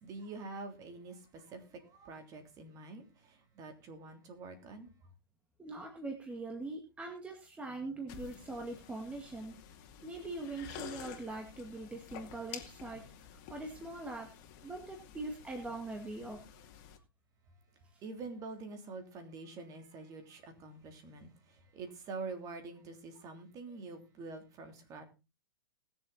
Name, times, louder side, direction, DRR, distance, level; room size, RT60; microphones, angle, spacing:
voice 1, 0.0-4.9 18.0-21.3 21.7-25.0, right 3 dB, 30° right, 3.3 m, -46 dB
voice 2, 5.6-9.5 10.0-14.3 14.6-16.5 17.9-18.0, right 2 dB, 10° right, 2.1 m, -42 dB
sound 1, 8.1-17.0, left 9 dB, 40° left, 2.5 m, -51 dB
20.0 x 7.3 x 4.1 m
hypercardioid pair, 125°, 12 cm